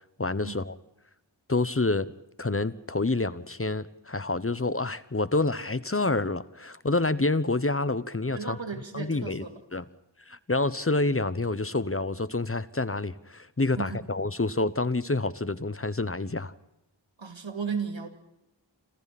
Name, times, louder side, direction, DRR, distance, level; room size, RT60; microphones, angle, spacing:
voice 1, 0.2-0.8 1.5-2.1 2.4-8.6 8.9-9.4 9.7-9.8 10.3-16.5, left 2 dB, 30° left, 16 dB, 1.0 m, -28 dB
voice 2, 8.3-9.8 13.8-14.1 17.2-18.1, right 5 dB, 85° right, 6 dB, 2.7 m, -35 dB
29.5 x 26.5 x 4.2 m, 0.85 s
wide cardioid pair, 45°, 44 cm